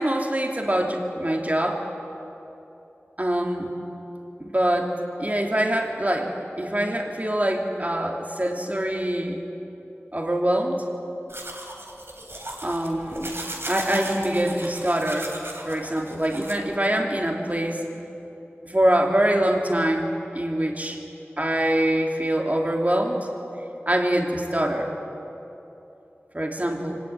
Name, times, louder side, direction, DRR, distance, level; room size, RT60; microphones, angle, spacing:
voice 1, 0.0-1.8 3.2-3.7 4.4-4.9 5.2-9.4 10.1-10.8 12.6-13.3 13.7-15.3 15.6-17.9 18.6-20.1 20.3-21.0 21.4-23.2 23.9-25.0 26.3-27.0, right 1 dB, 35° right, 1 dB, 3.0 m, -24 dB
sound 1, 11.3-16.5, right 1 dB, 60° right, 3.4 m, -36 dB
25.5 x 18.0 x 9.2 m, 3.0 s
wide cardioid pair, 40°, 5 cm